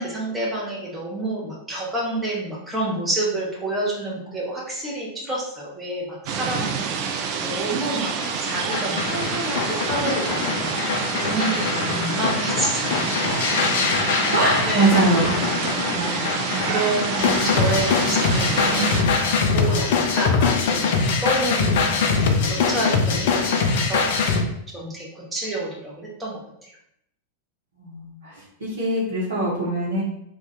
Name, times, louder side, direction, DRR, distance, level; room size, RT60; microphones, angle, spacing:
voice 1, 0.0-8.1 8.4-10.8 11.1-14.3 14.7-15.6 15.9-16.3 16.6-24.1 24.7-26.7, right 2 dB, 15° right, -2 dB, 0.8 m, -29 dB
sound 1, 6.3-19.0, right 6 dB, 45° right, 0.3 m, -27 dB
sound 2, 8.2-24.4, left 5 dB, 55° left, 0.4 m, -23 dB
voice 2, 14.3-15.3 27.8-28.1 28.6-30.0, right 2 dB, 65° right, -7 dB, 0.8 m, -21 dB
2.5 x 2.2 x 3.9 m, 0.75 s
figure-of-eight pair, 90°, 0 cm